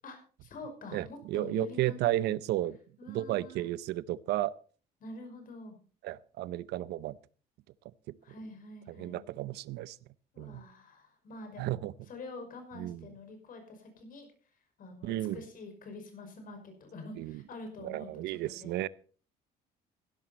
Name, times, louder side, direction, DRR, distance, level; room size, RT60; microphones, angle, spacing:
voice 1, 0.0-2.0 2.2-2.3 3.0-3.7 5.0-5.8 8.2-9.2 10.3-11.8 12.1-14.3 14.8-18.8, left 2 dB, 55° left, 6 dB, 5.6 m, -46 dB
voice 2, 0.9-2.8 3.1-4.5 6.0-7.2 8.9-10.0 10.4-10.6 11.6-11.9 12.7-13.1 15.0-15.4 17.2-17.4 17.8-18.9, right 15 dB, 80° right, 19 dB, 0.7 m, -33 dB
16.0 x 12.0 x 4.2 m, 0.40 s
cardioid pair, 110°, 17 cm